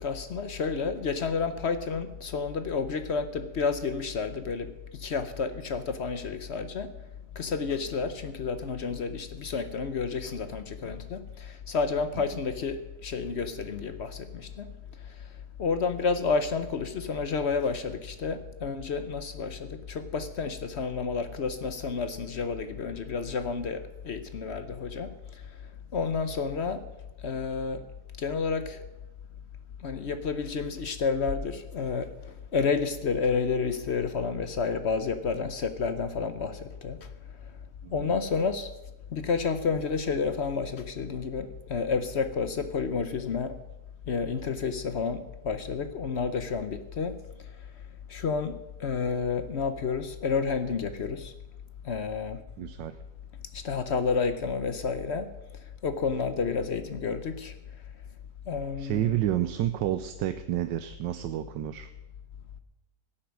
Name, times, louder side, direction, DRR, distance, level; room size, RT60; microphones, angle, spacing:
voice 1, 0.0-6.9 7.4-14.7 15.6-25.1 25.9-26.8 27.2-27.8 28.2-28.8 29.8-32.1 32.5-37.0 37.9-38.7 39.1-43.5 44.1-47.2 48.1-51.3 51.8-52.4 53.5-55.3 55.8-57.5 58.5-59.0, left 5 dB, 50° left, 10 dB, 0.8 m, -30 dB
voice 2, 37.8-38.1 52.6-53.0 58.8-61.9, right 13 dB, 85° right, 10 dB, 1.3 m, -30 dB
16.0 x 8.8 x 6.3 m, 0.95 s
omnidirectional pair, 1.9 m